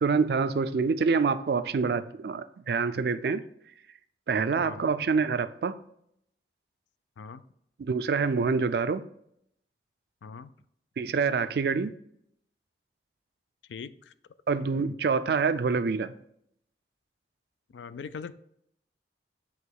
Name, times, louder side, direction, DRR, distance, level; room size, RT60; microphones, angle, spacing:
voice 1, 0.0-3.4 4.3-5.7 7.8-9.0 11.0-11.9 14.5-16.1, right 5 dB, 60° right, 13 dB, 0.4 m, -26 dB
voice 2, 4.6-4.9 7.2-7.4 10.2-10.5 13.7-14.1 14.6-14.9 17.7-18.3, left 5 dB, 90° left, 14 dB, 0.4 m, -41 dB
8.0 x 3.0 x 4.6 m, 0.72 s
head